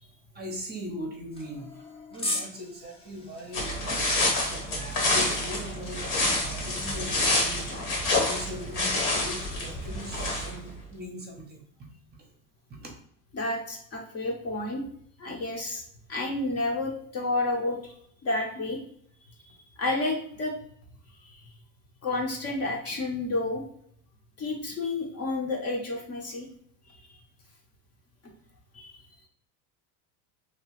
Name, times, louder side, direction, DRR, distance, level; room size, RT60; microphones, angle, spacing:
voice 1, 0.3-1.8 2.1-6.0 6.3-7.7 8.2-11.9 12.7-12.9, equal, 25° right, 0 dB, 0.7 m, -40 dB
sound 1, 1.3-5.6, left 2 dB, 15° left, 0.5 m, -38 dB
sound 2, 3.5-10.7, left 2 dB, 65° left, 1.5 m, -27 dB
voice 2, 13.3-14.8 15.2-15.8 16.1-17.8 18.2-18.8 19.8-20.6 22.0-23.6 24.4-26.5 28.7-28.9, left 2 dB, 35° left, 1 dB, 0.9 m, -30 dB
2.9 x 2.4 x 3.0 m, 0.64 s
supercardioid pair, 105°, 41 cm